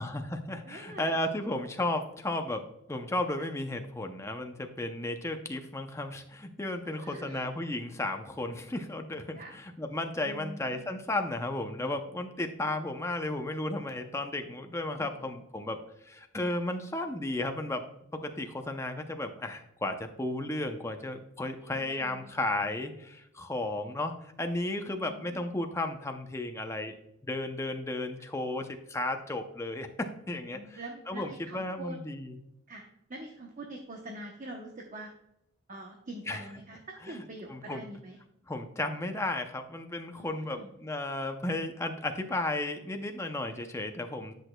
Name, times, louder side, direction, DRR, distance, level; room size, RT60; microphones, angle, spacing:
voice 1, 0.0-17.8 18.1-27.0 27.2-30.8 31.1-32.4 36.3-36.4 37.5-37.9 38.5-44.3, left 2 dB, 15° left, 5 dB, 0.5 m, -34 dB
voice 2, 0.6-1.2 3.4-3.5 6.7-7.4 9.4-9.6 10.2-10.9 21.6-22.3 24.9-25.5 30.5-32.0 32.7-32.8 33.1-35.1 35.7-36.8 37.1-38.2 40.2-40.7, right 1 dB, 35° right, 1 dB, 0.8 m, -45 dB
10.0 x 6.1 x 2.2 m, 0.81 s
head